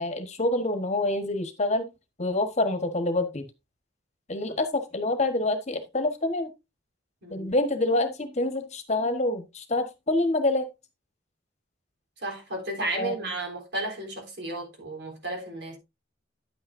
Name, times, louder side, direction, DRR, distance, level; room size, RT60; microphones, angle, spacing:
voice 1, 0.0-1.8 2.2-3.5 4.3-6.5 7.3-10.7 12.9-13.3, left 2 dB, 35° left, 1.3 m, -26 dB
voice 2, 7.2-7.5 12.2-15.8, right 2 dB, 60° right, 3.7 m, -33 dB
10.0 x 8.8 x 2.6 m
head